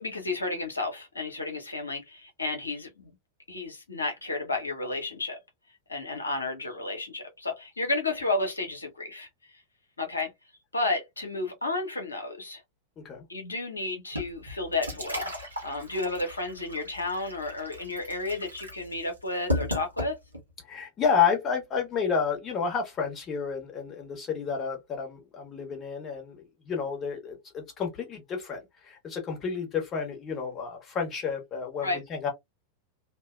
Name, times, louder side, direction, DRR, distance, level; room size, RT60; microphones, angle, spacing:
voice 1, 0.0-3.1 3.5-5.4 5.9-9.3 10.0-10.3 10.7-12.6 13.3-15.3 15.6-20.2 31.8-32.0, left 2 dB, 80° left, 0.8 m, -32 dB
sound 1, 14.1-20.5, left 1 dB, 80° right, 0.8 m, -35 dB
voice 2, 20.7-32.3, left 6 dB, 30° left, 1.1 m, -30 dB
2.7 x 2.1 x 2.3 m
figure-of-eight pair, 90°, 0 cm